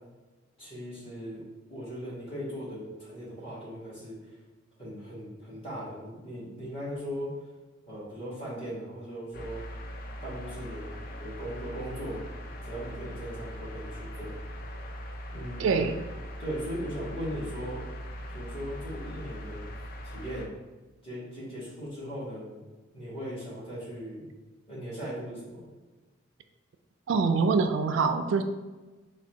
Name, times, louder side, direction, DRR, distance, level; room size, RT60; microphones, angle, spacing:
voice 1, 0.6-1.4 1.7-4.4 4.8-7.3 7.9-9.6 10.2-12.2 12.6-14.3 15.3-15.9 16.4-17.8 18.3-19.7 20.0-20.5 21.0-22.6 22.9-24.2 24.7-25.6, equal, 30° left, -8 dB, 1.4 m, -38 dB
sound 1, 9.3-20.5, equal, 45° left, 0.4 m, -40 dB
voice 2, 15.6-15.9 27.1-28.4, right 4 dB, 75° right, 8 dB, 0.3 m, -24 dB
3.5 x 2.2 x 4.4 m, 1.2 s
head